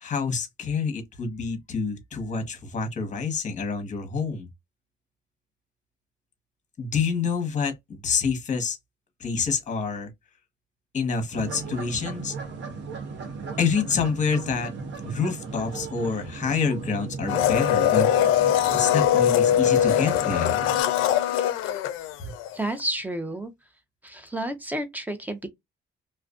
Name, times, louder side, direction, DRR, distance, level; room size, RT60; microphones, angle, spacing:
voice 1, 0.0-4.5 6.8-8.8 9.2-10.1 10.9-12.3 13.6-14.7 15.0-18.1 18.7-20.6 22.2-22.3, left 5 dB, 35° left, 0.9 m, -27 dB
sound 1, 11.3-20.8, right 4 dB, 65° right, 0.7 m, -36 dB
Domestic sounds home sounds, 17.3-22.5 22.8-22.9, left 11 dB, 90° left, 0.4 m, -22 dB
voice 2, 22.5-23.5 24.0-25.5, right 1 dB, 10° right, 0.6 m, -31 dB
2.4 x 2.1 x 2.4 m
cardioid pair, 95°, 20 cm